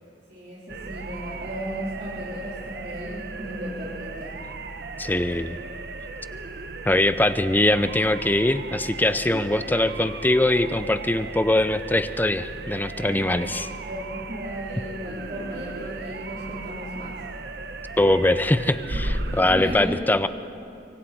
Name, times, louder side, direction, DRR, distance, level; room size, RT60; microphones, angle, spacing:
voice 1, 0.3-4.4 9.3-9.5 13.1-13.5 13.8-17.1 18.9-19.0 19.5-20.0, equal, 45° right, -9 dB, 3.8 m, -35 dB
sound 1, 0.7-19.7, right 3 dB, 60° right, 1.0 m, -36 dB
voice 2, 5.0-5.6 6.9-13.7 18.0-20.3, left 1 dB, 10° left, 12 dB, 0.5 m, -22 dB
24.5 x 24.5 x 4.3 m, 2.6 s
head